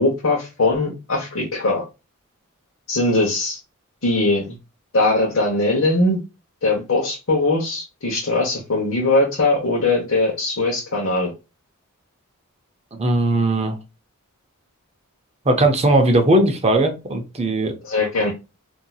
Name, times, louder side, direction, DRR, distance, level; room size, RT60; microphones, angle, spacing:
voice 1, 0.0-1.8 2.9-3.6 4.0-4.5 4.9-6.2 6.6-11.3 17.8-18.3, left 2 dB, 65° left, 1.0 m, -20 dB
voice 2, 12.9-13.8 15.5-17.7, right 1 dB, 30° right, 0.6 m, -18 dB
4.3 x 2.7 x 2.3 m
head